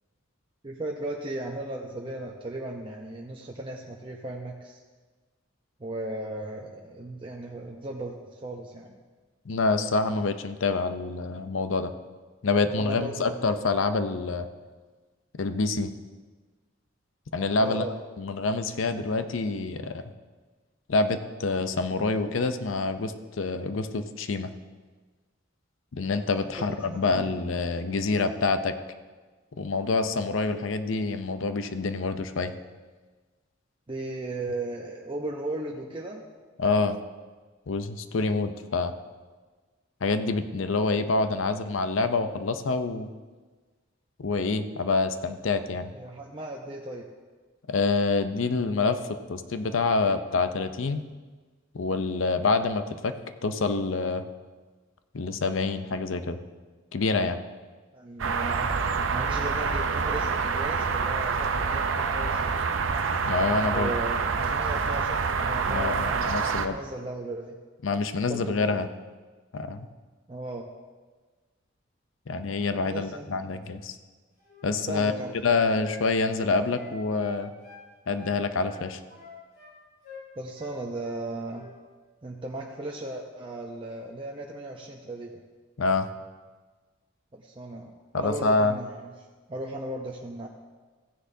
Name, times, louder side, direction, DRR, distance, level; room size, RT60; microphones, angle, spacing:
voice 1, 0.6-4.8 5.8-9.0 12.7-13.5 17.6-18.0 26.4-27.3 33.9-36.2 45.9-47.0 57.9-62.7 63.7-67.6 68.3-68.6 70.3-70.7 72.8-73.4 74.9-75.3 80.4-81.7 82.2-85.4 87.3-89.1 89.5-90.5, right 2 dB, 25° right, -1 dB, 0.7 m, -36 dB
voice 2, 9.5-11.9 12.4-14.5 15.4-15.9 17.3-17.8 18.2-20.0 20.9-24.5 25.9-28.7 29.6-32.5 36.6-37.0 37.7-38.9 40.0-43.1 44.2-45.9 47.7-49.0 49.3-51.0 51.7-53.1 53.4-54.2 55.1-56.4 56.9-57.4 63.2-63.9 65.7-66.8 67.8-68.9 69.5-69.9 72.3-74.0 74.6-75.1 75.4-77.5 78.1-79.0 85.8-86.1 88.1-88.8, left 3 dB, 80° left, 10 dB, 0.6 m, -26 dB
sound 1, 58.2-66.7, right 5 dB, 75° right, 0.6 m, -27 dB
Wind instrument woodwind instrument, 74.4-77.8 78.1-79.7 80.0-80.3 80.6-81.2 81.5-81.7, left 3 dB, 45° left, 3.8 m, -46 dB
15.5 x 10.0 x 2.7 m, 1.4 s
head